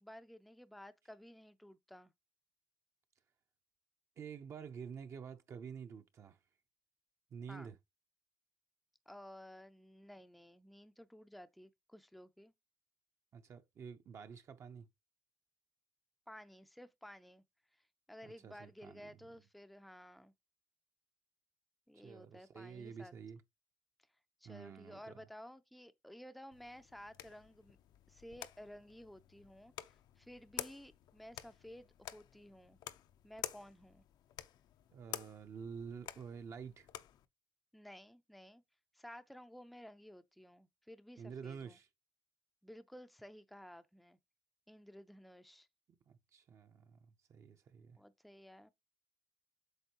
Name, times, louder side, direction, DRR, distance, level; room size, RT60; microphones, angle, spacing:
voice 1, 0.0-2.1 7.5-7.7 9.1-12.5 16.3-17.4 18.1-20.3 21.9-23.1 24.4-27.8 28.1-32.8 33.2-34.1 37.7-38.6 38.9-41.8 42.6-44.2 44.7-45.7 47.9-48.7, equal, ahead, 0.4 m, -54 dB
voice 2, 4.2-6.4 7.3-7.8 13.3-14.9 18.2-19.2 21.9-23.4 24.4-25.2 34.9-36.9 41.2-41.9 46.1-48.0, right 6 dB, 40° right, 0.6 m, -49 dB
sound 1, 26.5-37.2, left 11 dB, 70° left, 0.6 m, -50 dB
8.0 x 5.0 x 2.9 m
cardioid pair, 165°, 7 cm